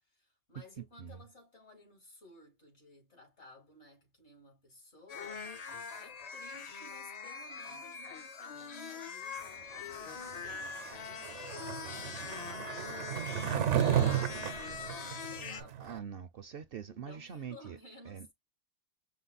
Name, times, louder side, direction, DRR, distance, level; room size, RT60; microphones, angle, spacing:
voice 1, 0.0-5.5 6.0-11.3 11.7-16.0 16.9-18.3, left 1 dB, 75° left, 3.3 m, -57 dB
sound 1, 5.1-15.6, left 5 dB, 45° left, 0.6 m, -43 dB
Skateboard, 10.5-16.0, right 9 dB, 85° right, 1.0 m, -33 dB
voice 2, 15.8-17.8 18.1-18.3, right 8 dB, 65° right, 0.7 m, -44 dB
5.8 x 2.0 x 3.9 m
omnidirectional pair, 1.2 m